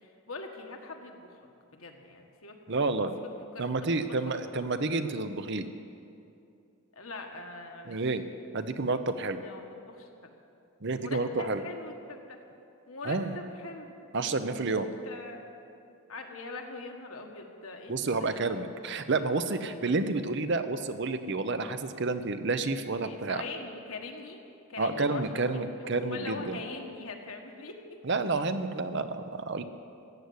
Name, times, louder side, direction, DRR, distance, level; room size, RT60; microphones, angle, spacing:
voice 1, 0.0-1.4 1.7-2.6 3.4-3.7 4.0-4.4 4.8-4.9 6.9-8.0 9.4-10.3 10.9-12.4 12.9-13.9 14.2-15.4 16.1-18.6 19.3-19.9 23.0-24.4 24.7-27.8, left 3 dB, 75° left, 2 dB, 1.6 m, -43 dB
voice 2, 2.7-3.1 3.6-5.7 7.9-8.2 8.5-9.4 10.8-11.6 13.0-13.3 14.1-14.9 17.9-23.4 24.8-26.6 28.0-29.6, right 3 dB, 55° right, 10 dB, 0.7 m, -30 dB
15.0 x 8.2 x 9.7 m, 2.6 s
head